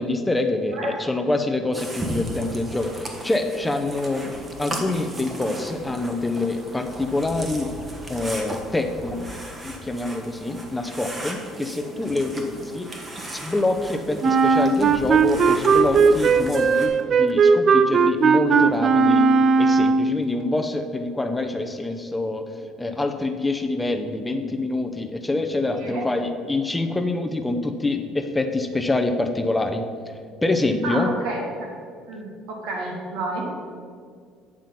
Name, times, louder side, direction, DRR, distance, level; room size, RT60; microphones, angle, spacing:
voice 1, 0.0-4.3 4.6-7.7 8.1-9.3 9.6-12.9 13.3-19.2 19.6-22.4 22.8-29.8 30.4-31.1, left 2 dB, 10° left, 6 dB, 0.6 m, -25 dB
sound 1, 1.7-16.9, right 1 dB, 25° right, 1.2 m, -36 dB
Wind instrument woodwind instrument, 14.2-20.2, right 5 dB, 45° right, 0.3 m, -17 dB
voice 2, 25.6-26.1 30.8-31.7 32.1-33.5, right 2 dB, 80° right, -1 dB, 1.8 m, -31 dB
9.1 x 3.7 x 5.7 m, 2.1 s
supercardioid pair, 85°, 0 cm